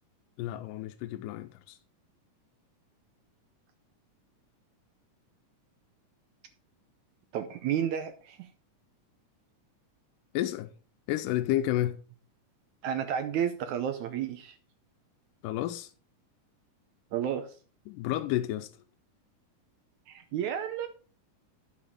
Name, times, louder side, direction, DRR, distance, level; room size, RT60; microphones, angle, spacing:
voice 1, 0.4-1.8 10.3-10.7 11.1-12.0 15.4-15.9 17.9-18.7, left 13 dB, 85° left, 2.2 m, -31 dB
voice 2, 7.3-8.5 12.8-14.6 17.1-17.6 20.1-20.9, right 9 dB, 80° right, 1.9 m, -31 dB
9.8 x 8.0 x 3.6 m
omnidirectional pair, 3.7 m